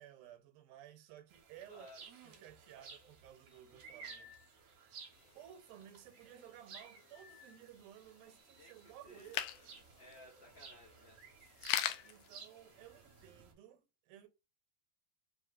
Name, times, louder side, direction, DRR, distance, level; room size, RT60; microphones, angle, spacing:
voice 1, 0.0-1.9 2.2-4.4 4.7-5.0 5.3-9.8 12.0-14.3, right 11 dB, 85° right, 2.6 m, -56 dB
sound 1, 1.3-13.5, right 4 dB, 60° right, 2.5 m, -57 dB
voice 2, 1.7-2.0 8.6-9.3 10.0-11.2, left 1 dB, 70° left, 1.1 m, -57 dB
sound 2, 5.1-13.3, left 11 dB, 85° left, 1.7 m, -44 dB
5.5 x 3.3 x 2.5 m
omnidirectional pair, 4.1 m